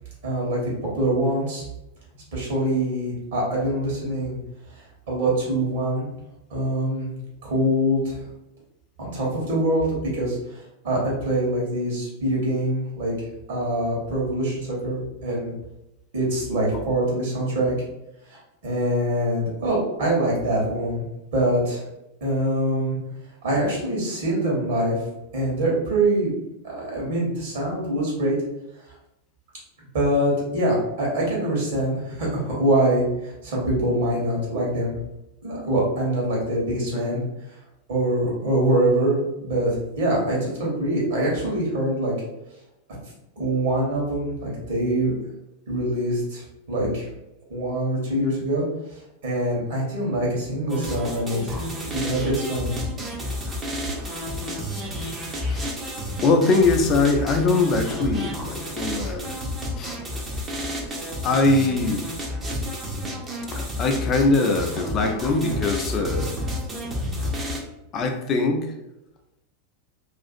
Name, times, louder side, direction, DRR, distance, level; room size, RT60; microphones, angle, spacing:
voice 1, 0.2-1.6 2.3-4.4 5.1-6.1 6.5-7.1 7.4-8.2 9.0-10.4 10.8-13.1 13.5-15.5 16.1-17.7 18.3-21.0 21.3-21.8 22.2-23.0 23.4-24.9 25.3-26.3 26.6-28.4 29.9-34.9 35.4-37.2 37.9-42.1 43.4-45.1 45.7-46.4 46.7-47.1 47.5-48.6 49.2-51.5 51.9-52.8, right 1 dB, 60° right, -4 dB, 1.1 m, -24 dB
sound 1, 50.7-67.6, left 1 dB, 20° right, 0.5 m, -30 dB
voice 2, 56.2-59.4 59.7-60.0 61.2-62.0 63.5-66.3 67.9-68.7, left 3 dB, 30° left, 4 dB, 0.4 m, -22 dB
2.5 x 2.4 x 2.5 m, 0.90 s
figure-of-eight pair, 90°, 0 cm